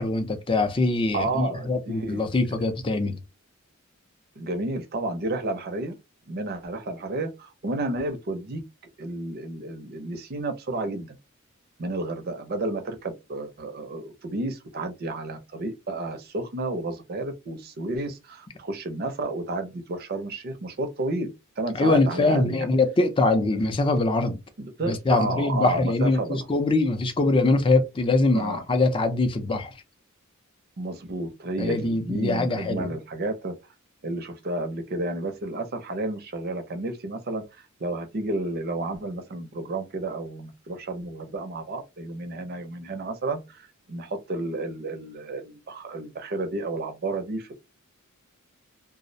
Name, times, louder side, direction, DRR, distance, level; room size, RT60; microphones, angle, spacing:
voice 1, 0.0-3.2 21.7-24.4 24.9-29.7 31.6-32.9, left 2 dB, 25° left, 0.4 m, -23 dB
voice 2, 1.1-2.3 4.4-6.0 6.3-8.6 9.0-11.2 11.8-22.7 24.6-26.5 28.3-28.6 30.8-33.5 34.0-37.4 37.8-47.5, right 2 dB, 50° right, 0.5 m, -31 dB
2.3 x 2.0 x 2.6 m
head